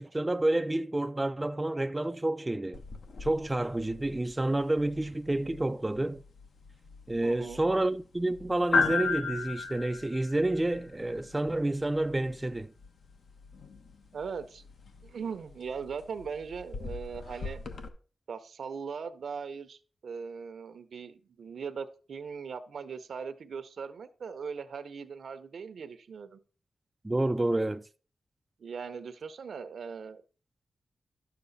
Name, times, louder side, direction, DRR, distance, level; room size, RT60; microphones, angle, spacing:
voice 1, 0.0-2.8 3.2-6.2 7.1-12.7 27.0-27.8, right 1 dB, 15° right, 0.3 m, -29 dB
sound 1, 2.7-17.9, left 4 dB, 70° left, 1.0 m, -37 dB
voice 2, 7.2-7.6 14.1-14.6 15.0-17.6 18.3-26.4 28.6-30.2, right 6 dB, 75° right, 0.8 m, -39 dB
11.5 x 6.9 x 4.0 m
wide cardioid pair, 130°, 0 cm